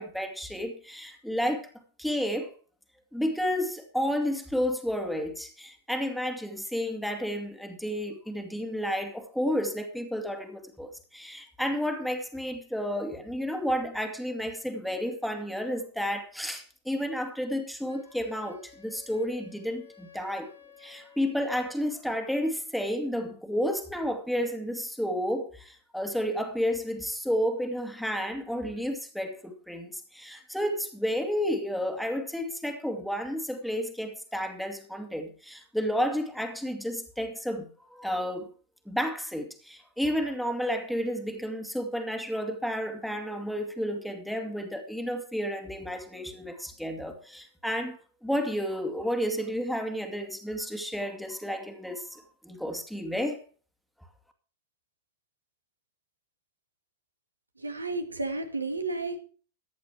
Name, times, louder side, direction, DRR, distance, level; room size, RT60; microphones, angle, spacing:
voice 1, 0.0-1.7 2.0-2.5 3.1-20.5 20.8-38.5 38.9-53.4, equal, ahead, 2.3 m, -31 dB
Wind instrument woodwind instrument, 17.9-22.0, left 7 dB, 85° left, 6.6 m, -55 dB
voice 2, 57.6-59.2, right 3 dB, 80° right, 2.2 m, -32 dB
15.0 x 10.0 x 4.7 m
figure-of-eight pair, 90°, 0 cm